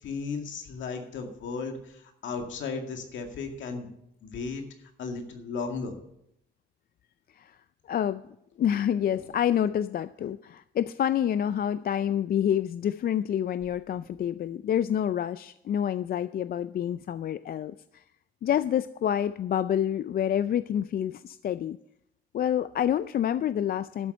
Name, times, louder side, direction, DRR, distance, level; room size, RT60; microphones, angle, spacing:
voice 1, 0.0-3.9 4.2-4.6 5.0-5.9, left 4 dB, 70° left, 4 dB, 2.1 m, -35 dB
voice 2, 7.9-8.2 8.6-18.0 18.4-21.8 22.3-24.1, left 10 dB, 50° left, 14 dB, 0.4 m, -28 dB
12.0 x 7.4 x 6.6 m, 0.78 s
cardioid pair, 90°, 20 cm